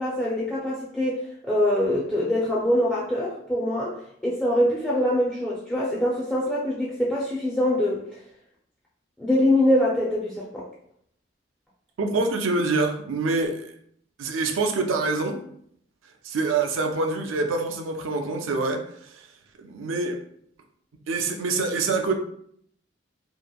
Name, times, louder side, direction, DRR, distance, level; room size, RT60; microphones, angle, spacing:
voice 1, 0.0-4.0 4.2-8.0 9.2-10.6, left 1 dB, 5° left, -7 dB, 0.4 m, -24 dB
voice 2, 12.0-13.7 14.2-15.4 16.2-19.2 19.6-20.2 21.1-22.2, right 3 dB, 85° right, 4 dB, 0.4 m, -26 dB
2.8 x 2.4 x 2.2 m, 0.68 s
head